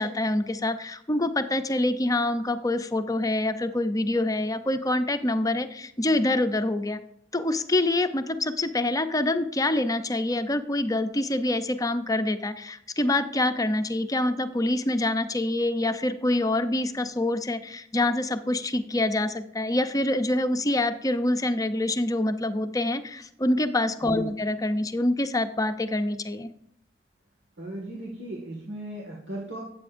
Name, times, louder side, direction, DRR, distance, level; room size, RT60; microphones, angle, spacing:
voice 1, 0.0-7.0 7.3-26.5, left 1 dB, 20° left, 9 dB, 0.6 m, -26 dB
voice 2, 27.6-29.6, right 1 dB, 70° right, -2 dB, 1.9 m, -36 dB
13.0 x 8.4 x 2.6 m, 0.74 s
head